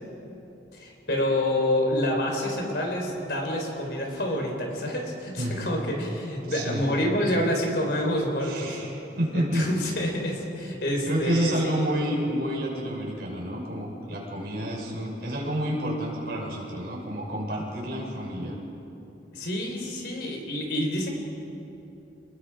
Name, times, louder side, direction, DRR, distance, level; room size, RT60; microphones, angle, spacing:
voice 1, 0.7-8.8 9.3-11.9 19.3-21.1, left 1 dB, 65° left, 1 dB, 4.4 m, -28 dB
voice 2, 6.5-6.8 8.4-9.7 11.1-18.6, equal, 60° right, -3 dB, 6.2 m, -29 dB
29.5 x 20.5 x 5.0 m, 3.0 s
head